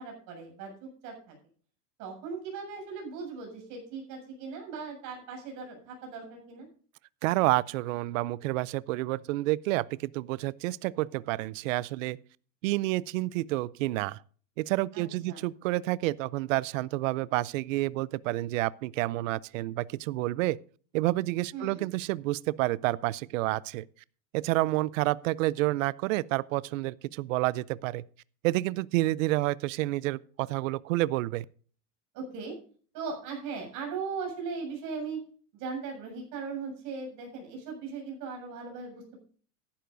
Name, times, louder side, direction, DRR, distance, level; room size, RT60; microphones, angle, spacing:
voice 1, 0.0-1.4 2.0-6.7 14.9-15.4 21.5-21.8 32.1-32.6 32.9-35.2 35.5-39.2, right 5 dB, 40° right, 7.0 m, -38 dB
voice 2, 7.2-12.2 12.6-14.2 14.6-20.6 20.9-23.9 24.3-28.0 28.4-31.5, right 18 dB, 55° right, 0.5 m, -29 dB
14.0 x 11.5 x 2.6 m
supercardioid pair, 160°, 46 cm